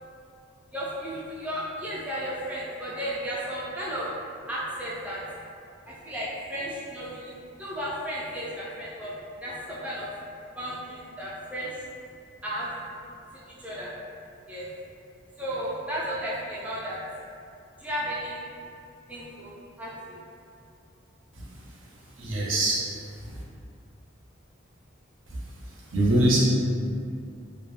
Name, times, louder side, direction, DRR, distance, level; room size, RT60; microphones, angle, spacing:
voice 1, 0.7-4.1 4.5-5.2 5.9-9.1 9.4-10.1 10.6-11.8 12.4-12.7 13.6-13.9 14.5-14.7 15.4-17.0 17.8-18.4 19.1-19.5 19.8-20.2, equal, 5° right, -8 dB, 0.3 m, -34 dB
voice 2, 22.2-22.8 25.9-26.4, right 1 dB, 80° right, -4 dB, 0.5 m, -22 dB
2.2 x 2.0 x 3.0 m, 2.5 s
head